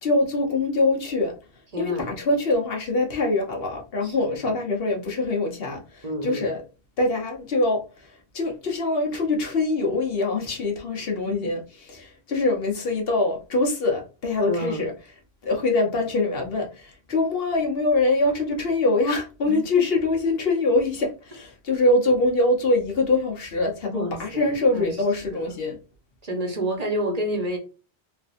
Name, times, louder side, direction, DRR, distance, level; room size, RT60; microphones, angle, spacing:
voice 1, 0.0-6.6 7.0-14.9 15.4-25.8, left 2 dB, 65° left, 1.1 m, -24 dB
voice 2, 1.7-2.1 4.0-4.4 6.0-6.5 11.2-11.5 14.5-14.9 19.4-19.6 23.9-24.9 25.3-25.4 26.2-27.6, equal, 40° right, 0.9 m, -29 dB
3.4 x 2.5 x 2.4 m
omnidirectional pair, 1.1 m